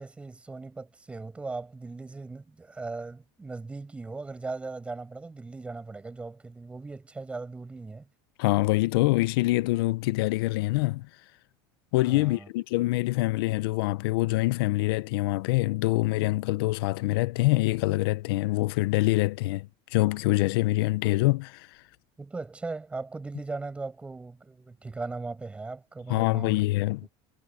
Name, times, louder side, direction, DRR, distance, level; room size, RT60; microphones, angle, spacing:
voice 1, 0.0-8.1 12.1-12.5 22.2-26.6, right 3 dB, 10° right, 5.8 m, -38 dB
voice 2, 8.4-11.1 11.9-21.7 26.1-27.1, left 19 dB, 85° left, 0.5 m, -25 dB
cardioid pair, 170°, 12 cm